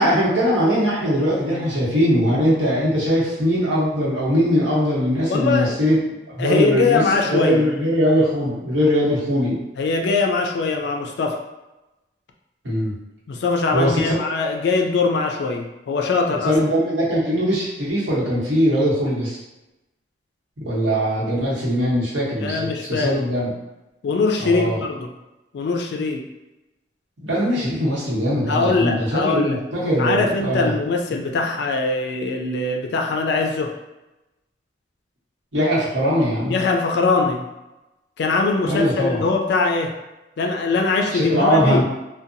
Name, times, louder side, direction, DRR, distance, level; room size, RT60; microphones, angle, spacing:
voice 1, 0.0-6.0 6.4-7.0 7.3-9.6 12.6-12.9 13.7-14.1 14.4-14.5 16.3-19.4 20.7-23.5 24.4-24.8 27.2-30.7 35.5-36.6 38.6-39.2 41.1-41.8, equal, 75° right, -6 dB, 1.0 m, -21 dB
voice 2, 5.3-5.8 6.4-7.6 9.8-11.4 13.3-16.5 21.4-21.5 22.4-23.1 24.0-25.1 25.5-26.2 28.5-29.6 30.0-33.7 36.5-37.5 38.2-39.9 40.4-41.8, left 4 dB, 60° left, 3 dB, 0.3 m, -22 dB
2.7 x 2.2 x 2.5 m, 1.0 s
head